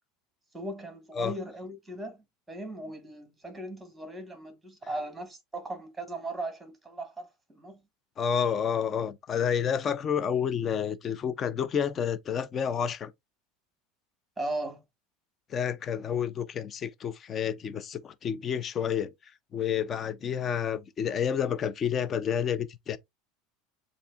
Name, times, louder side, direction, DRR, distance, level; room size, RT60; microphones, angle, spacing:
voice 1, 0.5-2.2 2.5-7.3 7.6-7.8 14.4-14.8, right 2 dB, 5° right, 1.4 m, -37 dB
voice 2, 8.2-13.1 15.5-19.1 19.5-23.0, left 8 dB, 25° left, 0.5 m, -29 dB
7.0 x 2.6 x 2.3 m
supercardioid pair, 155°, 0 cm